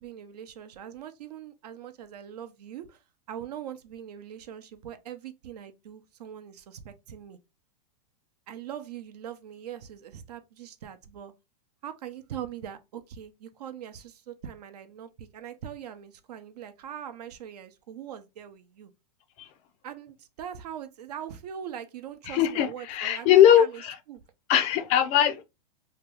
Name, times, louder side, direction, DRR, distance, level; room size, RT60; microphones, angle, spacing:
voice 1, 0.0-7.4 8.5-11.3 11.8-18.9 19.8-24.2, right 9 dB, 75° right, 0.6 m, -41 dB
voice 2, 22.3-23.9 24.5-25.4, left 10 dB, 35° left, 0.4 m, -20 dB
2.8 x 2.3 x 3.3 m
hypercardioid pair, 135°, 21 cm